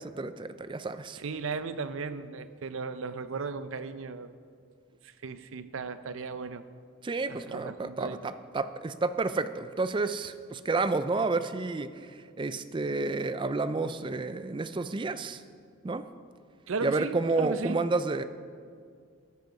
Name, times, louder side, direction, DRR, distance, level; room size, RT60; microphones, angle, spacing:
voice 1, 0.0-1.2 7.0-11.9 12.4-15.4 15.8-16.1 16.8-18.2, right 3 dB, 25° right, 12 dB, 0.4 m, -30 dB
voice 2, 1.2-4.3 5.0-6.7 7.3-8.2 16.7-17.9, right 4 dB, 70° right, 12 dB, 0.6 m, -36 dB
13.5 x 9.1 x 4.8 m, 2.2 s
head